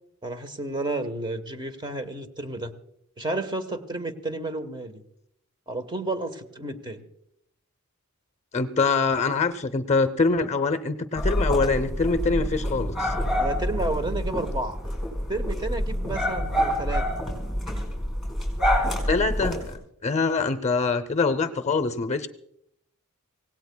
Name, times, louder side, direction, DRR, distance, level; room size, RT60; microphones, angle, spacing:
voice 1, 0.2-2.7 3.2-5.0 5.7-7.0 13.4-14.8 15.3-17.0, right 2 dB, 20° right, 9 dB, 1.1 m, -31 dB
voice 2, 8.5-13.1 19.1-22.3, left 4 dB, 30° left, 12 dB, 0.7 m, -24 dB
sound 1, 11.1-19.7, equal, ahead, 4.8 m, -27 dB
26.0 x 17.5 x 2.2 m, 0.74 s
head